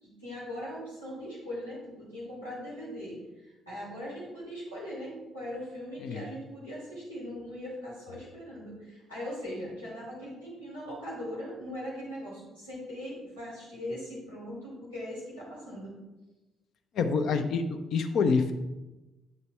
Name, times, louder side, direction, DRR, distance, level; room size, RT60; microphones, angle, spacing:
voice 1, 0.0-16.0, equal, 85° left, -9 dB, 3.0 m, -40 dB
voice 2, 16.9-18.5, left 5 dB, 55° left, 8 dB, 0.6 m, -27 dB
8.5 x 6.8 x 3.3 m, 1.1 s
figure-of-eight pair, 45°, 0 cm